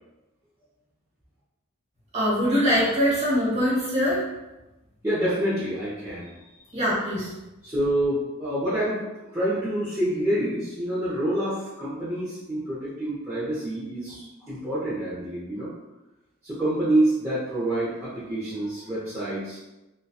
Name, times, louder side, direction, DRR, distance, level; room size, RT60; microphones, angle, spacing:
voice 1, 2.1-4.2 6.7-7.3, equal, 30° right, -8 dB, 1.1 m, -23 dB
voice 2, 5.0-6.3 7.6-9.0 9.3-15.7 16.4-19.6, right 1 dB, 15° right, -12 dB, 0.6 m, -27 dB
2.7 x 2.2 x 2.2 m, 1.0 s
head